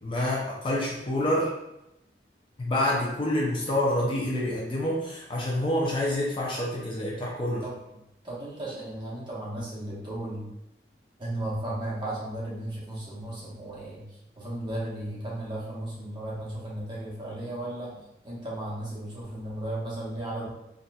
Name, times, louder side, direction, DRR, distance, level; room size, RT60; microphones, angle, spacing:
voice 1, 0.0-1.5 2.6-7.6, left 1 dB, 30° left, -4 dB, 0.6 m, -27 dB
voice 2, 8.2-10.5 11.2-14.0 14.4-20.5, right 1 dB, 25° right, -7 dB, 1.0 m, -35 dB
4.0 x 2.5 x 2.2 m, 0.88 s
head